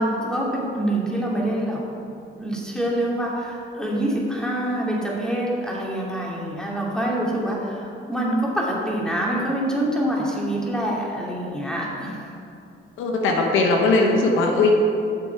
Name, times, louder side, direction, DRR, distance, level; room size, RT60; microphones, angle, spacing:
voice 1, 0.0-1.8 2.3-12.3, right 1 dB, 5° left, -4 dB, 2.6 m, -25 dB
voice 2, 13.0-14.7, left 3 dB, 90° left, 1 dB, 1.3 m, -19 dB
12.0 x 7.2 x 4.7 m, 2.6 s
cardioid pair, 90°, 20 cm